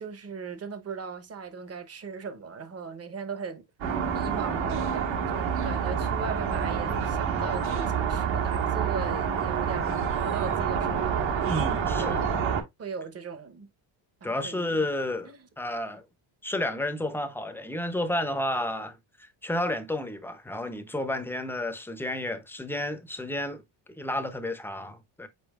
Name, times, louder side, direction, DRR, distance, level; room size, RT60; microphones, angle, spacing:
voice 1, 0.0-3.6 4.1-11.5 12.0-12.3 12.8-13.7 14.2-14.9 15.2-15.5, right 5 dB, 30° right, 0.9 m, -38 dB
sound 1, 3.8-12.6, right 7 dB, 70° right, 1.5 m, -28 dB
voice 2, 11.5-12.3 14.2-15.3 15.6-16.0 16.4-19.0 19.4-23.6 24.0-25.3, left 1 dB, 5° left, 0.6 m, -31 dB
5.3 x 4.3 x 2.3 m
cardioid pair, 125°, 49 cm